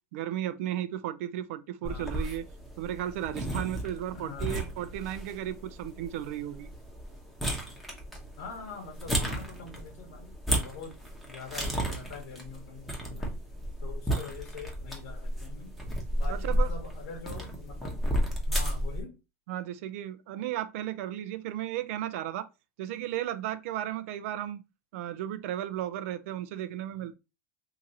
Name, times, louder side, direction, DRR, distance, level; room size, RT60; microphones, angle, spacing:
voice 1, 0.1-2.4 2.8-6.7 16.3-16.7 19.5-22.5 22.8-24.6 24.9-27.2, right 12 dB, 70° right, 0.5 m, -34 dB
voice 2, 1.8-2.1 4.1-4.6 8.4-10.9 11.3-13.3 13.8-15.7 16.1-17.9 18.5-19.1, left 4 dB, 75° left, 1.0 m, -44 dB
sound 1, 1.8-19.0, equal, ahead, 0.9 m, -33 dB
2.9 x 2.5 x 3.9 m
supercardioid pair, 140°, 8 cm